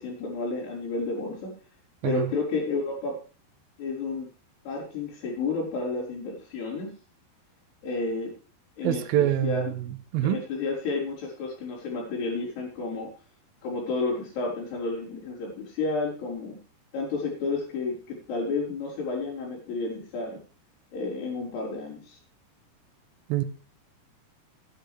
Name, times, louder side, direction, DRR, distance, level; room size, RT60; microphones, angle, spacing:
voice 1, 0.0-1.5 2.0-3.2 3.8-4.3 4.6-6.9 7.8-8.3 8.8-9.1 9.4-9.6 10.2-13.1 13.6-16.6 16.9-20.4 20.9-22.2, left 3 dB, 65° left, -9 dB, 6.3 m, -31 dB
voice 2, 8.8-10.4 23.3-23.4, right 12 dB, 70° right, 8 dB, 2.5 m, -26 dB
15.5 x 10.5 x 3.4 m, 0.37 s
omnidirectional pair, 5.0 m